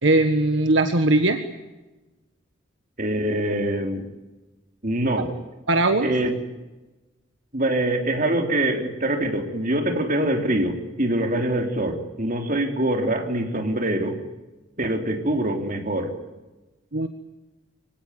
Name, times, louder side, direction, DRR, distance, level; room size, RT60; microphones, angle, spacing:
voice 1, 0.0-1.4 5.1-5.2 5.7-6.1 16.9-17.1, right 2 dB, 70° right, 7 dB, 1.5 m, -19 dB
voice 2, 3.0-4.1 4.8-5.3 6.0-6.3 7.5-14.2 14.8-16.1, right 1 dB, 40° right, 4 dB, 3.6 m, -24 dB
25.0 x 18.0 x 9.8 m, 1.1 s
head